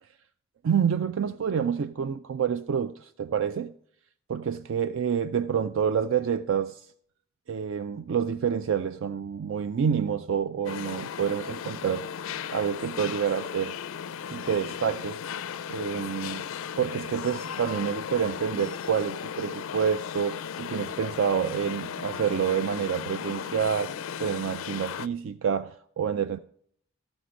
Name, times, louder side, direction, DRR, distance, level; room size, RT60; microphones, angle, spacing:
voice 1, 0.6-3.7 4.3-6.9 7.5-12.0 12.5-13.8 14.3-15.2 15.7-16.5 16.8-23.9 24.2-26.4, right 7 dB, 60° right, 0.3 m, -28 dB
sound 1, 10.6-25.1, left 8 dB, 65° left, 0.4 m, -36 dB
13.0 x 5.1 x 5.0 m
head